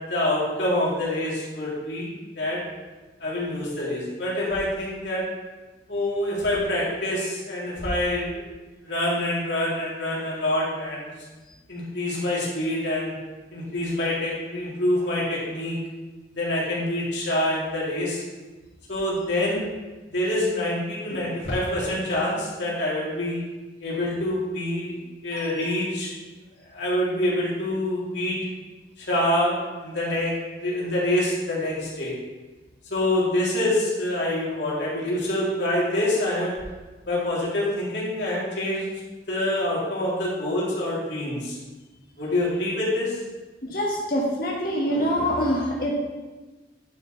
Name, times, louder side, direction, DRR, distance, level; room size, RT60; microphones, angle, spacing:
voice 1, 0.1-2.6 3.2-5.2 5.9-8.4 8.8-11.1 11.7-13.1 13.5-15.7 16.3-18.2 18.9-19.7 20.1-23.4 23.8-26.1 26.7-28.4 29.0-32.1 32.9-36.5 37.1-38.9 39.3-41.6 42.2-43.2, left 1 dB, 85° left, -6 dB, 3.1 m, -26 dB
voice 2, 43.6-46.0, equal, 50° left, -4 dB, 1.6 m, -25 dB
10.5 x 6.6 x 3.3 m, 1.2 s
head